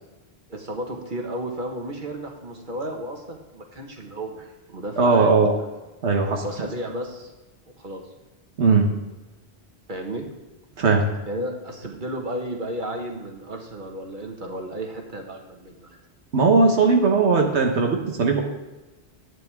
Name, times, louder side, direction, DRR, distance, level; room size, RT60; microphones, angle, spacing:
voice 1, 0.5-4.4 4.7-5.4 6.4-7.3 7.8-8.0 9.9-10.3 11.3-16.0, right 1 dB, 45° right, 2 dB, 1.7 m, -33 dB
voice 2, 5.0-5.5 6.0-6.4 8.6-8.9 10.8-11.1 16.3-18.4, right 4 dB, 80° right, 2 dB, 1.4 m, -18 dB
11.0 x 9.3 x 3.6 m, 1.1 s
omnidirectional pair, 1.1 m